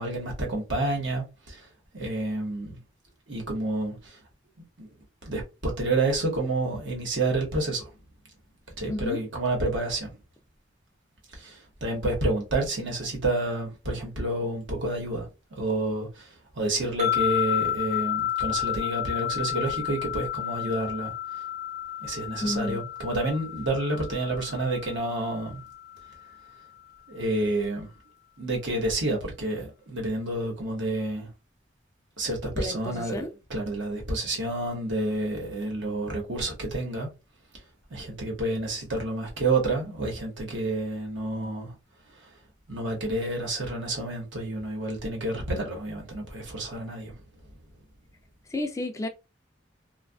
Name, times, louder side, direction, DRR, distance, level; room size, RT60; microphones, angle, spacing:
voice 1, 0.0-1.6 1.9-2.8 3.3-4.2 4.8-4.9 5.2-7.9 8.8-10.1 11.4-16.3 16.5-21.1 22.0-25.6 27.1-27.9 28.4-31.3 32.2-37.1 37.9-41.7 42.7-47.2, right 2 dB, 80° right, 1.1 m, -29 dB
voice 2, 8.9-9.2 22.4-22.8 32.6-33.3 48.5-49.1, left 1 dB, 15° left, 0.3 m, -31 dB
sound 1, 17.0-26.3, left 11 dB, 40° right, 0.6 m, -31 dB
2.6 x 2.3 x 2.3 m
head